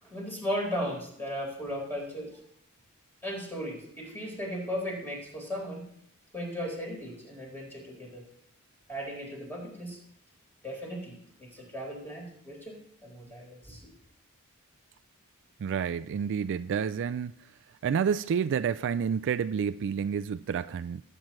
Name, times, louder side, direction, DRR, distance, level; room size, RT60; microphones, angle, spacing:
voice 1, 0.0-2.3 3.2-5.9 6.3-8.3 8.9-10.0 10.6-13.9, equal, 10° left, -3 dB, 4.4 m, -36 dB
voice 2, 15.6-17.3 17.8-21.0, right 7 dB, 55° right, 12 dB, 0.3 m, -29 dB
19.0 x 9.0 x 3.1 m, 0.67 s
head